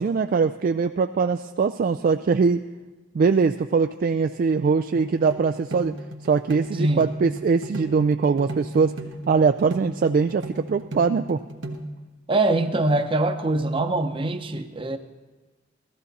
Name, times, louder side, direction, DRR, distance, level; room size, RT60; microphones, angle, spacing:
voice 1, 0.0-2.6 3.1-5.9 6.2-8.9 9.3-11.4, right 5 dB, 45° right, 9 dB, 0.3 m, -22 dB
sound 1, 5.0-11.8, right 2 dB, 80° right, 1.2 m, -36 dB
voice 2, 12.3-15.0, right 2 dB, 30° right, 8 dB, 0.8 m, -23 dB
15.5 x 14.0 x 4.1 m, 1.3 s
head